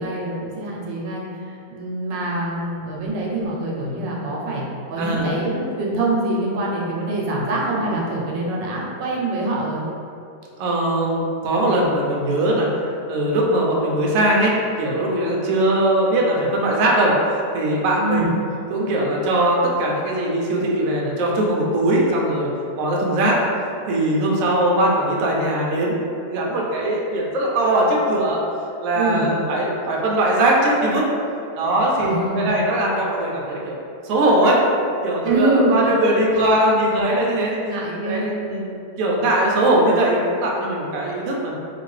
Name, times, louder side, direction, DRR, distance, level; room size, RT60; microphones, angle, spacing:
voice 1, 0.0-9.8 18.0-18.3 28.9-29.4 32.0-32.5 35.2-35.8 36.3-36.5 37.4-38.3, right 2 dB, 85° right, -3 dB, 1.3 m, -25 dB
voice 2, 5.0-5.3 7.8-7.9 10.6-12.7 13.1-18.3 18.7-22.5 22.8-23.4 23.9-28.4 28.8-31.1 31.6-33.8 34.0-34.6 35.0-37.6 38.0-41.6, right 1 dB, 70° right, -2 dB, 0.8 m, -20 dB
3.0 x 2.5 x 3.1 m, 2.5 s
omnidirectional pair, 1.9 m